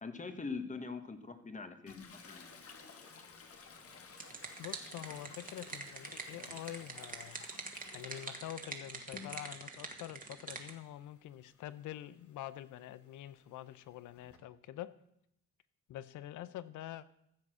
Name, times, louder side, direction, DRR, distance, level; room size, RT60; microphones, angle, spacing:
voice 1, 0.0-2.7, left 4 dB, 25° left, 8 dB, 1.5 m, -43 dB
Toilet flush, 1.9-9.7 10.1-14.4, left 5 dB, 50° left, 1.7 m, -56 dB
sound 1, 3.9-10.7, right 4 dB, 30° right, 1.7 m, -45 dB
voice 2, 4.6-7.4 7.9-14.9 15.9-17.1, left 13 dB, 80° left, 16 dB, 0.7 m, -46 dB
14.5 x 7.3 x 6.3 m, 0.76 s
cardioid pair, 90°, 30 cm